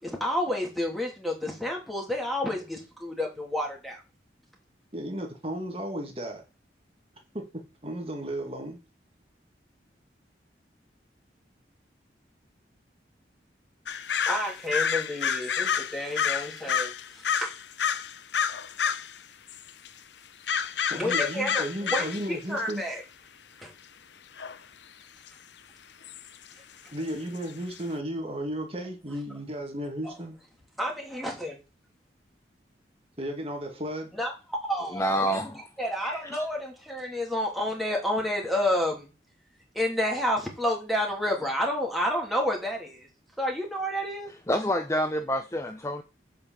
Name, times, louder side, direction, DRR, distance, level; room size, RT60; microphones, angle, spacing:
voice 1, 0.0-4.0 14.3-17.5 20.9-23.0 23.6-23.7 30.0-30.1 30.8-31.6 34.1-35.4 35.8-39.1 39.7-43.1 43.4-44.3, left 1 dB, ahead, 3.1 m, -30 dB
voice 2, 4.9-6.4 7.3-8.8 20.9-22.8 26.9-30.4 33.2-34.1, right 1 dB, 30° right, 1.9 m, -34 dB
sound 1, 13.9-19.2 19.5-19.9 20.5-22.3 22.6-22.7 24.4-24.6 25.3-25.4 26.0-26.3 27.1-27.2 27.4-27.5 27.8-27.9, left 7 dB, 75° left, 0.7 m, -29 dB
voice 3, 34.9-35.7 36.0-36.4 44.5-46.0, equal, 15° left, 0.6 m, -28 dB
7.8 x 5.5 x 7.4 m
head